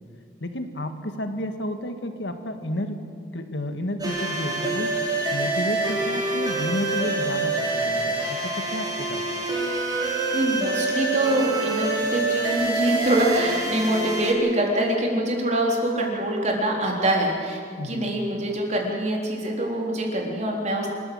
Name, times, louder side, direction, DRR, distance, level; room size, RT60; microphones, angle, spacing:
voice 1, 0.4-3.0 3.3-4.9 5.3-9.2 17.8-18.1, left 1 dB, 70° left, 7 dB, 1.8 m, -31 dB
sound 1, 4.0-14.3, right 2 dB, 25° right, 3.7 m, -26 dB
voice 2, 10.3-20.9, right 1 dB, 40° right, 0 dB, 3.9 m, -24 dB
27.0 x 14.0 x 7.9 m, 2.1 s
head